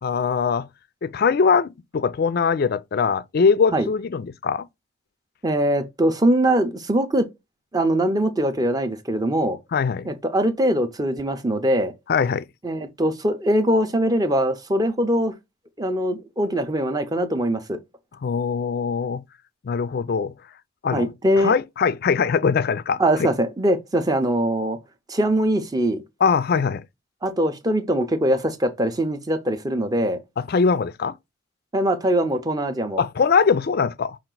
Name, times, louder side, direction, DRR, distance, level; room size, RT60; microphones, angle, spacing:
voice 1, 0.0-0.7 1.0-4.7 9.7-10.1 12.1-12.5 18.2-19.2 19.6-20.3 20.8-21.1 21.4-23.3 26.2-26.8 30.4-31.1 33.0-34.2, left 5 dB, 45° left, 0.3 m, -21 dB
voice 2, 5.4-7.3 7.7-9.6 10.0-11.9 12.6-15.3 15.8-17.8 20.9-21.6 23.0-24.8 25.1-26.0 27.2-30.2 31.7-33.0, right 1 dB, 20° right, 0.5 m, -22 dB
5.8 x 2.4 x 3.7 m
head